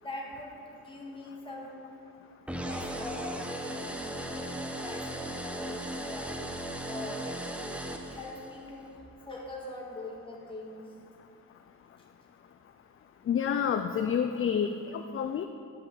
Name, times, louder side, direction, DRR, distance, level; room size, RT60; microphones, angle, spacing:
voice 1, 0.0-1.9 2.5-6.5 6.9-8.9 9.3-10.9, left 1 dB, 15° left, -3 dB, 1.9 m, -42 dB
sound 1, 2.5-8.7, right 1 dB, 5° right, 0.6 m, -37 dB
voice 2, 13.3-15.4, left 7 dB, 40° left, 7 dB, 0.4 m, -29 dB
10.5 x 5.5 x 7.4 m, 2.4 s
wide cardioid pair, 140°, 35 cm